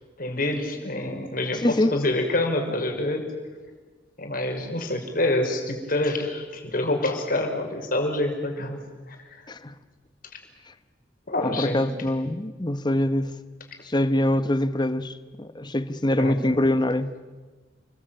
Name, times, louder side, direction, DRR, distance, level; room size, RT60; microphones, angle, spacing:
voice 1, 0.2-3.2 4.2-8.8 9.1-9.2 11.3-11.8 16.2-16.5, left 1 dB, 50° left, 5.6 m, -26 dB
voice 2, 1.6-1.9 9.5-9.7 11.4-13.3 13.8-17.1, left 1 dB, 25° left, 1.3 m, -24 dB
30.0 x 21.5 x 9.1 m
head